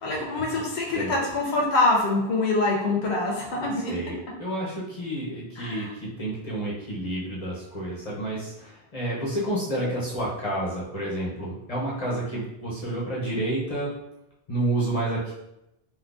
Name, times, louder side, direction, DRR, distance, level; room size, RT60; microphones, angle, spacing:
voice 1, 0.0-3.9 5.6-5.9, left 2 dB, 90° left, -2 dB, 0.9 m, -25 dB
voice 2, 3.9-13.9 14.5-15.3, right 1 dB, 40° left, -6 dB, 0.8 m, -30 dB
3.7 x 2.5 x 2.5 m, 0.85 s
omnidirectional pair, 1.1 m